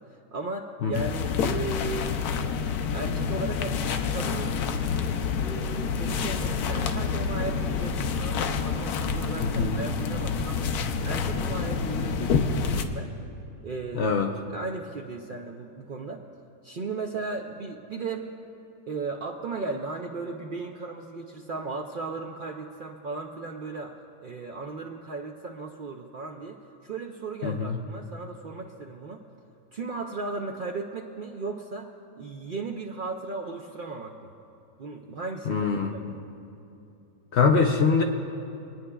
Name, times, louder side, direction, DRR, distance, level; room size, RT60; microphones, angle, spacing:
voice 1, 0.0-2.2 2.9-4.6 5.4-10.7 11.0-13.1 13.6-14.1 14.5-16.2 16.6-18.3 18.9-26.6 26.8-29.2 29.7-31.9 32.2-34.3 34.8-36.1, right 3 dB, 70° right, 1 dB, 0.4 m, -36 dB
sound 1, 0.9-12.8, left 6 dB, 90° left, 1.1 m, -28 dB
voice 2, 9.4-9.8 13.9-14.3 27.4-27.8 35.5-36.1 37.3-38.0, left 5 dB, 60° left, 3 dB, 0.7 m, -23 dB
26.5 x 9.6 x 2.3 m, 2.8 s
omnidirectional pair, 1.6 m